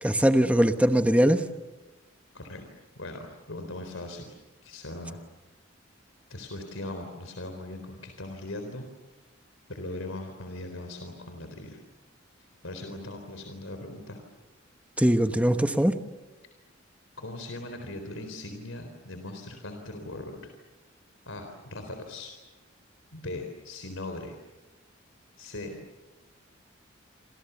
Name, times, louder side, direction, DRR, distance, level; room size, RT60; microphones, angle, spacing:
voice 1, 0.0-1.4 15.0-15.9, right 1 dB, 5° right, 8 dB, 1.1 m, -21 dB
voice 2, 3.0-4.4 4.6-5.2 6.3-8.9 9.7-11.8 12.6-14.2 17.2-20.5 21.3-22.3 23.1-24.4 25.4-25.7, left 2 dB, 85° left, 6 dB, 4.0 m, -39 dB
29.0 x 27.0 x 7.0 m, 1.1 s
head